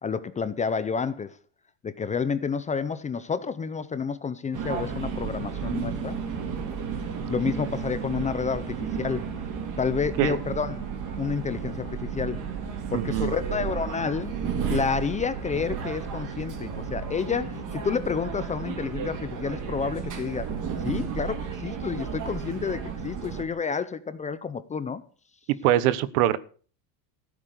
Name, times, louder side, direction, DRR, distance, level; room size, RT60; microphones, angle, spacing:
voice 1, 0.0-1.4 1.8-6.2 7.3-9.3 9.8-12.4 12.9-14.4 14.7-20.5 20.8-25.0, left 6 dB, 15° left, 0.6 m, -30 dB
sound 1, 4.5-23.4, right 6 dB, 40° right, 3.4 m, -33 dB
voice 2, 12.9-13.3 25.5-26.4, right 13 dB, 75° right, 1.3 m, -23 dB
15.0 x 8.6 x 6.7 m
cardioid pair, 145°, 47 cm